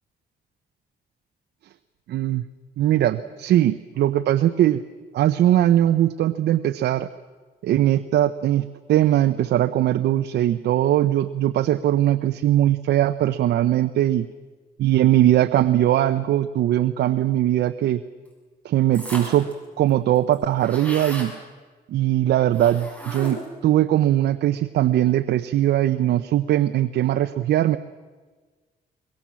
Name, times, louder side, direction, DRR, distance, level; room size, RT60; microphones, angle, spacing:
voice 1, 2.1-2.4 2.8-4.8 5.1-7.1 7.6-14.3 14.8-18.0 18.6-19.5 19.8-21.4 21.9-27.8, right 12 dB, 90° right, 9 dB, 0.7 m, -20 dB
sound 1, 18.9-19.5 19.9-20.0 20.2-21.3 22.5-23.6, equal, 10° left, 6.8 m, -35 dB
24.5 x 22.5 x 7.5 m, 1.4 s
cardioid pair, 100°, 17 cm